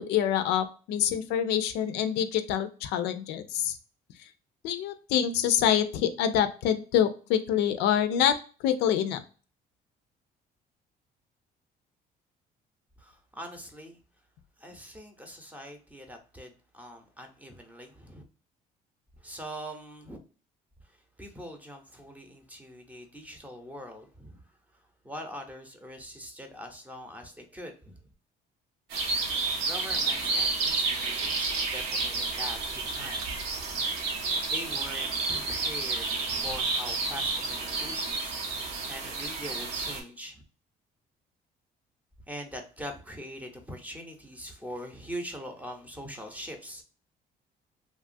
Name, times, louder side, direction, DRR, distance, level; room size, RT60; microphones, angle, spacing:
voice 1, 0.0-3.8 4.6-8.4 8.6-9.2, left 9 dB, 85° left, 10 dB, 0.4 m, -26 dB
voice 2, 13.0-14.0 14.6-18.2 19.2-20.2 20.8-28.1 29.3-33.4 33.8-40.4 42.3-46.8, equal, 10° right, 5 dB, 0.6 m, -43 dB
sound 1, 28.9-40.0, right 3 dB, 80° right, 0.8 m, -30 dB
2.9 x 2.3 x 2.5 m, 0.37 s
cardioid pair, 110°, 17 cm